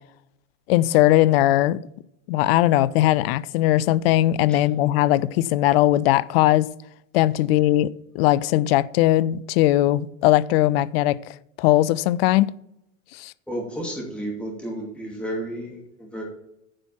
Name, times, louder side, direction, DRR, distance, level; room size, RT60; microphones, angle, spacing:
voice 1, 0.7-1.8 2.3-6.7 7.1-7.9 8.1-11.2 11.6-12.5 13.2-13.3, left 14 dB, 50° left, 0.5 m, -19 dB
voice 2, 13.5-16.2, right 1 dB, 5° left, 2.7 m, -32 dB
9.9 x 6.1 x 5.7 m
figure-of-eight pair, 85°, 38 cm